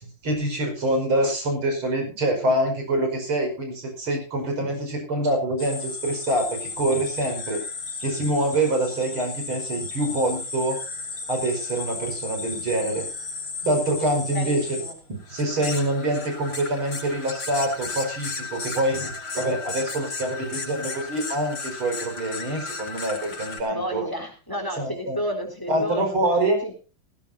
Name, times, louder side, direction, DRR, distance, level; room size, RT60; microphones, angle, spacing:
voice 1, 0.2-7.6 8.0-10.8 11.3-13.0 13.6-14.6 15.1-24.1 24.8-25.2 25.7-26.6, right 1 dB, 85° right, 3 dB, 6.0 m, -25 dB
sound 1, 5.6-23.6, left 4 dB, 90° left, 5.1 m, -34 dB
voice 2, 14.3-15.0 23.7-26.2 26.6-26.7, equal, 10° left, 4 dB, 3.9 m, -31 dB
17.5 x 16.5 x 2.7 m, 0.33 s
omnidirectional pair, 2.2 m